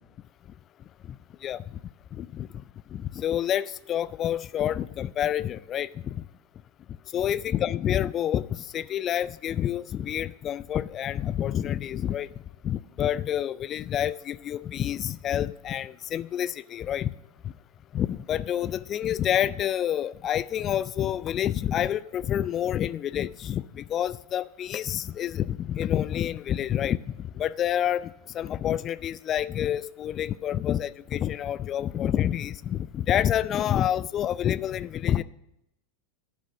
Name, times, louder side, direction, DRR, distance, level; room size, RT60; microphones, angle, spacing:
voice 1, 2.1-2.5 2.9-6.2 7.1-12.3 12.6-17.1 17.9-35.2, left 10 dB, 30° left, 17 dB, 0.3 m, -28 dB
11.5 x 6.2 x 7.9 m, 0.85 s
figure-of-eight pair, 90°, 0 cm